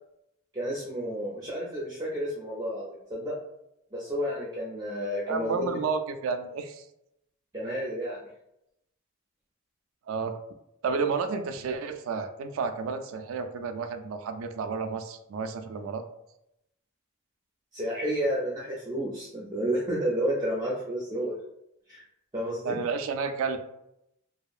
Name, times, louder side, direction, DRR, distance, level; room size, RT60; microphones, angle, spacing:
voice 1, 0.5-3.4 3.9-5.8 7.5-8.2 17.7-21.3 21.9-22.0 22.3-22.8, equal, 20° right, -6 dB, 0.4 m, -31 dB
voice 2, 5.3-6.8 10.1-10.4 10.8-16.0 22.6-23.6, right 5 dB, 85° right, 7 dB, 0.3 m, -31 dB
2.8 x 2.3 x 2.4 m, 0.82 s
head